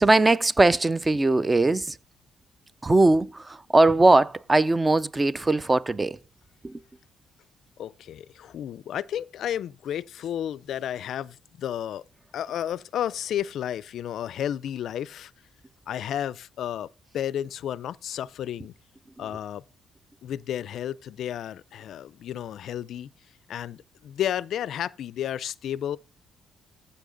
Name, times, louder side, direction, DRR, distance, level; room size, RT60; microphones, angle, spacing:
voice 1, 0.0-2.0 2.8-6.2 6.6-6.8, right 2 dB, 20° right, 0.4 m, -20 dB
voice 2, 7.8-12.0 12.3-15.3 15.9-16.9 17.1-18.7 19.2-19.6 20.2-23.1 23.5-26.0, left 10 dB, 70° left, 0.4 m, -32 dB
14.5 x 5.6 x 3.9 m
cardioid pair, 90°, 0 cm